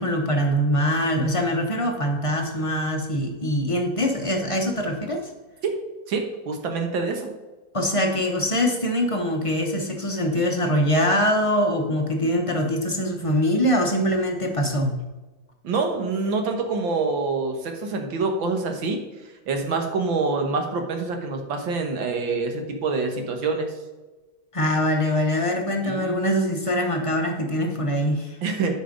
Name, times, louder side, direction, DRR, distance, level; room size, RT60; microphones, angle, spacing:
voice 1, 0.0-5.3 7.7-15.0 24.5-28.4, equal, 30° left, 2 dB, 0.6 m, -23 dB
voice 2, 6.1-7.3 15.6-19.0 19.5-23.7 25.8-26.3 28.4-28.7, right 4 dB, 85° right, 4 dB, 2.0 m, -26 dB
8.9 x 5.3 x 5.2 m, 1.2 s
omnidirectional pair, 2.1 m